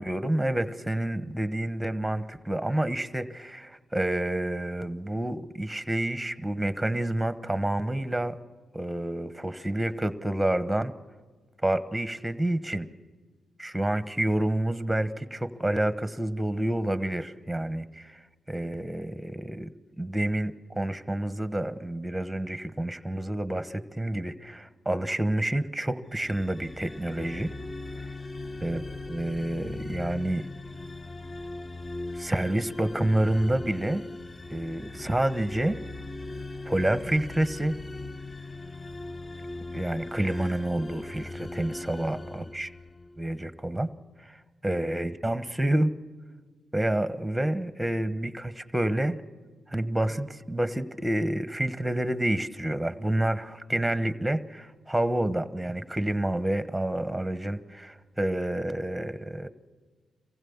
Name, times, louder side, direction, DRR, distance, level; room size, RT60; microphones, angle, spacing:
voice 1, 0.0-8.4 8.7-10.9 11.6-12.9 13.6-18.2 18.5-19.7 20.0-27.5 28.6-30.4 32.1-34.0 34.5-35.8 36.6-37.8 39.7-42.7 43.2-43.9 44.2-45.9 46.7-49.2 49.7-59.5, right 1 dB, 5° right, 13 dB, 1.2 m, -28 dB
sound 1, 26.1-43.3, left 2 dB, 25° left, 0.8 m, -39 dB
24.0 x 15.5 x 7.2 m, 1.4 s
cardioid pair, 60°, 0 cm